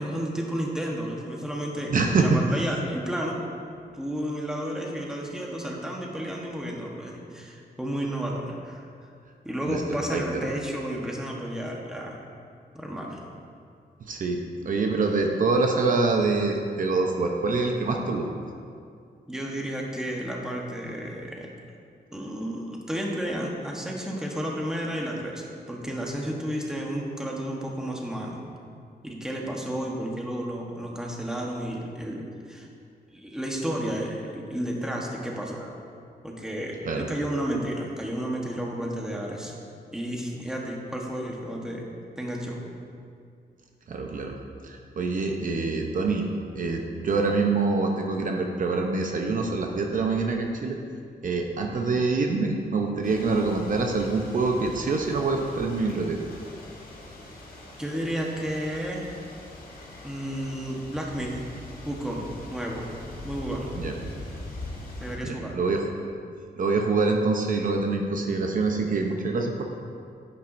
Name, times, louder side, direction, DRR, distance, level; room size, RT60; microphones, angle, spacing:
voice 1, 0.0-1.9 2.2-3.4 3.9-8.8 9.4-12.2 12.7-13.2 19.3-21.5 22.1-28.4 29.0-32.7 33.1-35.7 36.2-39.5 39.9-41.9 42.2-42.6 57.8-59.0 60.0-61.4 61.8-63.7 65.0-65.6, equal, 5° right, -1 dB, 1.1 m, -32 dB
voice 2, 1.9-2.6 9.7-9.8 10.1-10.5 14.0-18.2 36.8-37.1 43.9-44.4 44.6-46.3 46.5-50.8 51.2-56.2 63.7-63.9 65.2-65.8 66.6-69.6, right 3 dB, 55° right, 2 dB, 0.7 m, -25 dB
sound 1, 53.0-65.2, left 2 dB, 60° left, 1.8 m, -42 dB
10.5 x 8.8 x 2.6 m, 2.4 s
wide cardioid pair, 115°, 16 cm